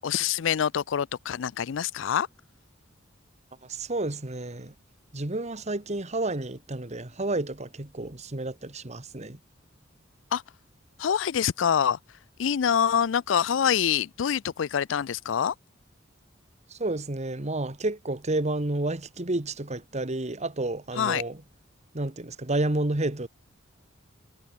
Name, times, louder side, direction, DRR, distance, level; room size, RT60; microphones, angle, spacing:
voice 1, 0.0-2.3 10.3-10.4 11.0-12.0 12.4-15.5 21.0-21.2, left 8 dB, 75° left, 0.4 m, -25 dB
voice 2, 3.6-4.7 5.1-9.4 16.7-21.4 21.9-23.3, right 2 dB, 35° right, 1.6 m, -30 dB
head